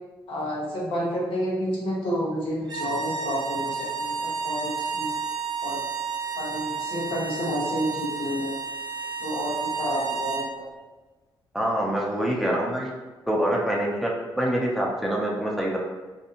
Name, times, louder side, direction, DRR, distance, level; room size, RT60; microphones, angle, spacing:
voice 1, 0.3-5.1 5.6-5.8 6.4-8.6 9.2-10.7, equal, 90° left, -4 dB, 0.8 m, -30 dB
sound 1, 2.6-10.5, right 5 dB, 55° right, 0.4 m, -31 dB
voice 2, 11.5-12.9 13.3-15.8, right 1 dB, ahead, -3 dB, 0.5 m, -25 dB
2.5 x 2.2 x 2.8 m, 1.2 s
cardioid pair, 90°, 9 cm